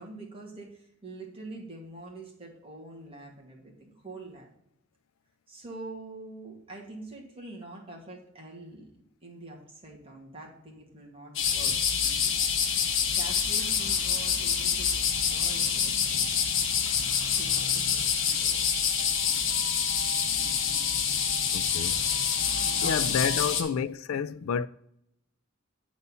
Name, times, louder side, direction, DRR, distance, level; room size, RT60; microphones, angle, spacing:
voice 1, 0.0-4.5 5.5-8.9 9.2-11.8 12.0-12.3 13.1-16.3 17.3-18.6 18.8-19.5 20.3-20.6 22.6-23.7, right 2 dB, 30° right, 2.0 m, -45 dB
sound 1, 11.4-23.6, left 7 dB, 65° left, 1.0 m, -26 dB
voice 2, 21.5-22.0 22.8-24.7, left 7 dB, 85° left, 0.3 m, -29 dB
8.2 x 4.1 x 5.4 m
head